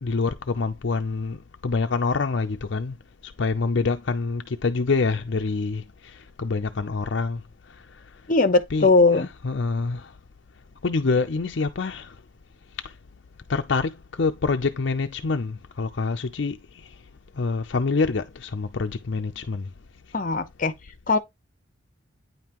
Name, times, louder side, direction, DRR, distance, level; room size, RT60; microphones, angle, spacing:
voice 1, 0.0-3.0 3.2-8.2 8.7-10.2 10.8-12.2 12.7-13.0 13.5-17.0 17.3-19.7, left 4 dB, 65° left, 0.5 m, -26 dB
voice 2, 8.3-9.3 20.1-20.7 21.1-21.2, left 3 dB, 45° left, 0.9 m, -19 dB
9.4 x 5.5 x 3.0 m
head